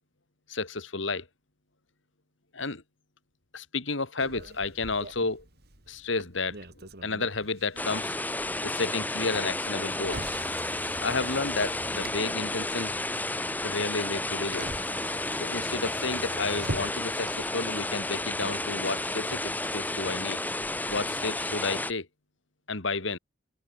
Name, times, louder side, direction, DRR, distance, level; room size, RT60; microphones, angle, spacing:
voice 1, 0.5-1.3 2.5-2.8 3.5-5.4 5.9-8.2 8.6-10.3 11.0-12.9 13.6-14.8 15.3-20.4 20.9-22.1 22.7-23.2, left 3 dB, 75° left, 2.4 m, -31 dB
Motor vehicle (road), 4.2-21.3, right 1 dB, 55° right, 3.9 m, -45 dB
sound 1, 7.8-21.9, left 2 dB, 10° left, 1.8 m, -32 dB
open air
head